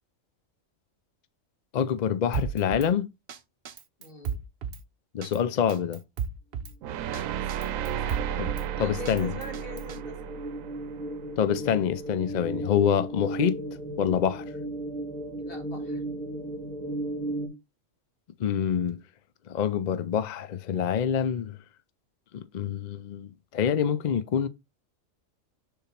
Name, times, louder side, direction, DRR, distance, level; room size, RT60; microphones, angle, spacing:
voice 1, 1.7-3.1 5.1-6.0 8.4-8.5 8.8-9.3 11.4-13.6 14.0-14.4 18.4-19.0 19.5-21.6 22.3-24.5, left 8 dB, 65° left, 0.4 m, -26 dB
Drum kit, 2.3-2.9 3.3-3.4 3.7-4.8 5.2-5.4 5.7-6.7 7.1-7.2 7.5-8.7 9.1-10.0, right 7 dB, 55° right, 0.8 m, -34 dB
voice 2, 4.0-4.4 7.1-7.7 8.0-8.2 8.8-10.4 15.4-16.0, left 2 dB, 45° left, 1.9 m, -43 dB
sound 1, 6.8-11.9, right 10 dB, 85° right, 1.0 m, -34 dB
sound 2, 7.7-17.5, right 1 dB, 5° left, 3.0 m, -36 dB
6.9 x 3.8 x 4.3 m
omnidirectional pair, 1.4 m